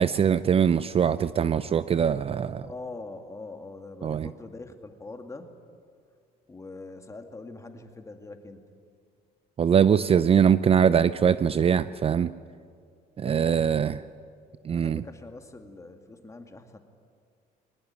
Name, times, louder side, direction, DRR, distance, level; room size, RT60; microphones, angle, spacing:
voice 1, 0.0-2.7 4.0-4.3 9.6-12.3 13.2-14.0 14.6-15.0, right 8 dB, 35° right, 15 dB, 0.5 m, -22 dB
voice 2, 2.6-5.5 6.5-8.6 13.2-13.9 14.7-16.8, left 3 dB, 20° left, 5 dB, 2.2 m, -43 dB
22.0 x 19.0 x 9.5 m, 2.3 s
cardioid pair, 110°, 17 cm